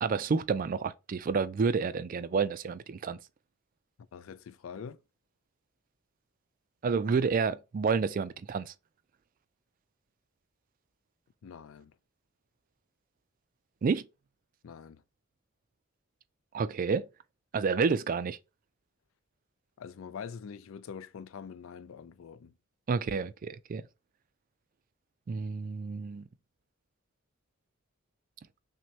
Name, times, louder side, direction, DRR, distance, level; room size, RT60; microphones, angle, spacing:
voice 1, 0.0-3.2 6.8-8.7 13.8-14.0 16.5-17.1 17.5-18.4 22.9-23.8 25.3-26.3, right 5 dB, 40° right, 0.3 m, -29 dB
voice 2, 4.1-5.0 11.4-12.0 14.6-15.0 19.8-22.5, left 6 dB, 75° left, 0.4 m, -44 dB
6.0 x 2.1 x 2.8 m
head